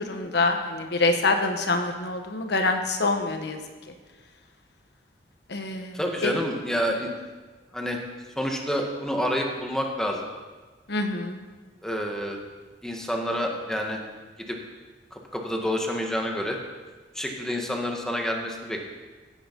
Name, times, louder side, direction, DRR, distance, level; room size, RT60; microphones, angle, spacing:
voice 1, 0.0-3.6 5.5-6.3 10.9-11.4, left 3 dB, 65° left, 5 dB, 1.3 m, -26 dB
voice 2, 5.9-7.1 7.7-8.0 8.3-10.3 11.8-12.4 12.8-14.0 14.4-14.6 15.1-16.6 17.1-18.8, equal, 5° left, 1 dB, 1.7 m, -28 dB
16.0 x 9.0 x 5.4 m, 1.3 s
head